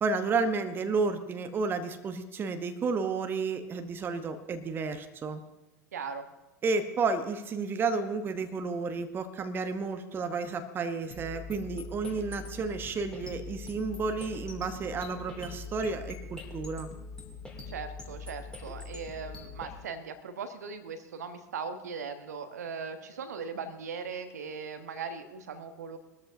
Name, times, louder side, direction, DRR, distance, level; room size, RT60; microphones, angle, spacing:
voice 1, 0.0-5.4 6.6-16.9, right 4 dB, 25° right, 8 dB, 1.0 m, -31 dB
voice 2, 5.9-6.3 17.6-26.0, right 5 dB, 65° right, 8 dB, 1.2 m, -39 dB
sound 1, 11.1-19.7, left 3 dB, 10° left, 2.8 m, -43 dB
21.5 x 13.0 x 2.8 m, 1.0 s
figure-of-eight pair, 85°, 9 cm